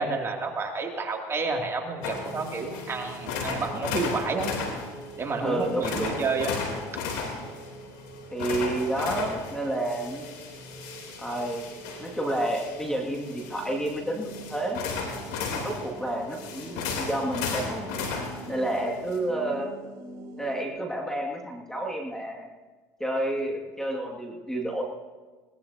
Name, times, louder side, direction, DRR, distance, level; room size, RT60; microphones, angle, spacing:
voice 1, 0.0-4.5 5.2-6.6, right 4 dB, 30° right, 1 dB, 2.7 m, -30 dB
sound 1, 2.0-19.2, left 5 dB, 80° left, 3.3 m, -35 dB
sound 2, 2.0-20.7, right 3 dB, 50° right, 2.5 m, -45 dB
voice 2, 5.4-6.2 8.3-10.3 11.2-11.7 12.0-14.8 15.5-17.9 18.5-19.7 20.4-22.5 23.0-24.8, right 1 dB, 5° left, 0 dB, 2.2 m, -30 dB
21.5 x 18.5 x 2.9 m, 1.3 s
supercardioid pair, 85°, 9 cm